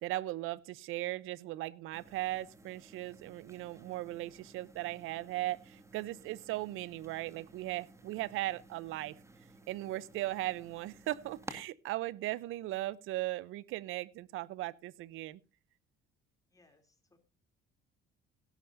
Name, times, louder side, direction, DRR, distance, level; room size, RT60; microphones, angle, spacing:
voice 1, 0.0-9.2 9.7-15.4, right 16 dB, 75° right, 22 dB, 0.6 m, -38 dB
sound 1, 1.9-11.6, right 2 dB, 15° right, 1.9 m, -54 dB
voice 2, 16.5-17.2, left 3 dB, 15° left, 5 dB, 3.0 m, -67 dB
17.0 x 11.5 x 2.6 m, 0.31 s
cardioid pair, 95°, 21 cm